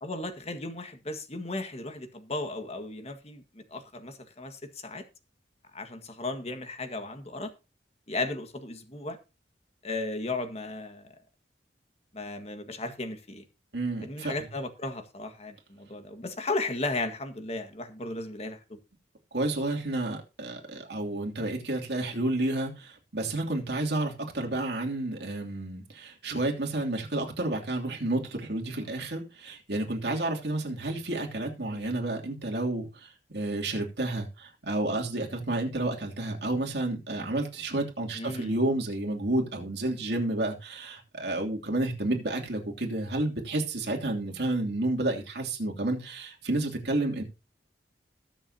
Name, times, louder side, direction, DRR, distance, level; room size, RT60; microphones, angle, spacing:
voice 1, 0.0-5.0 5.7-7.5 8.1-9.2 9.8-11.1 12.1-13.4 14.0-18.8 28.8-28.9 31.7-31.9 38.1-38.6, left 2 dB, 35° left, 1.7 m, -35 dB
voice 2, 13.7-14.3 19.3-47.2, right 2 dB, 70° right, 3.0 m, -30 dB
21.0 x 7.1 x 2.9 m
head